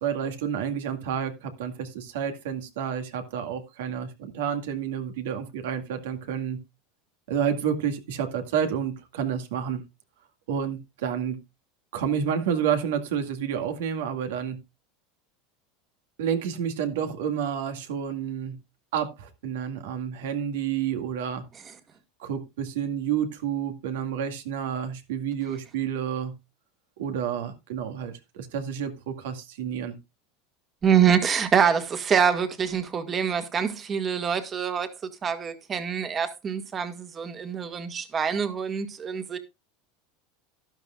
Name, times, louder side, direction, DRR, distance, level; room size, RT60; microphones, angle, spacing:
voice 1, 0.0-6.6 7.3-9.8 10.5-11.4 11.9-14.6 16.2-18.6 18.9-21.5 22.2-26.4 27.0-30.0, right 8 dB, 85° right, 2.1 m, -29 dB
voice 2, 30.8-34.9 35.2-39.4, right 7 dB, 25° right, 1.7 m, -25 dB
12.0 x 12.0 x 2.4 m
supercardioid pair, 135°, 0 cm